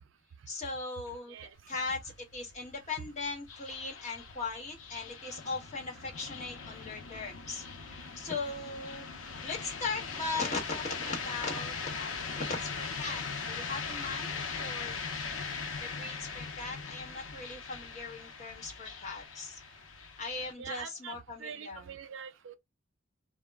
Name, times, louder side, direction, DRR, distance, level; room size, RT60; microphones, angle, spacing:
voice 1, 0.5-1.4 1.7-2.0 2.3-7.6 7.9-9.1 9.4-13.2 13.5-14.9 15.8-19.6 20.2-21.8, left 3 dB, 35° left, 1.1 m, -38 dB
voice 2, 1.3-1.8 20.6-22.5, right 7 dB, 75° right, 0.5 m, -44 dB
sound 1, 1.6-20.5, left 5 dB, 85° left, 0.6 m, -40 dB
2.2 x 2.0 x 3.4 m
head